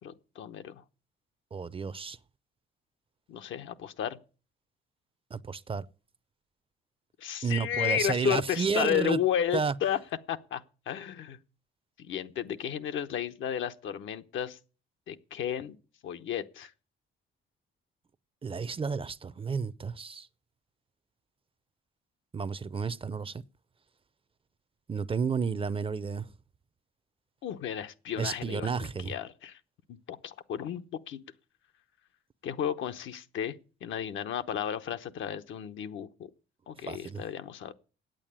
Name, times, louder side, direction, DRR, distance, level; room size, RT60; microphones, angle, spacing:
voice 1, 0.0-0.8 3.3-4.2 7.2-10.0 10.3-11.4 12.0-14.6 15.1-15.8 16.0-16.7 27.4-29.6 29.9-31.2 32.4-36.1 36.7-37.7, left 9 dB, 75° left, 0.9 m, -33 dB
voice 2, 1.5-2.2 5.3-5.9 7.4-9.2 9.5-9.7 18.4-20.3 22.3-23.4 24.9-26.3 28.2-29.1 36.9-37.2, right 5 dB, 30° right, 0.5 m, -31 dB
9.0 x 8.5 x 8.8 m
cardioid pair, 90°, 20 cm